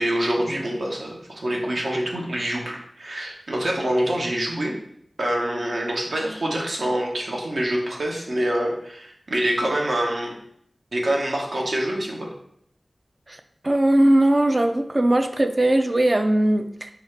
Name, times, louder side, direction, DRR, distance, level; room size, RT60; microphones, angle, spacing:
voice 1, 0.0-4.7 5.2-10.3 10.9-12.3, right 1 dB, 70° right, -1 dB, 0.8 m, -25 dB
voice 2, 13.6-16.9, right 1 dB, 35° right, 8 dB, 0.3 m, -19 dB
4.9 x 2.4 x 3.1 m, 0.69 s
wide cardioid pair, 70°, 0 cm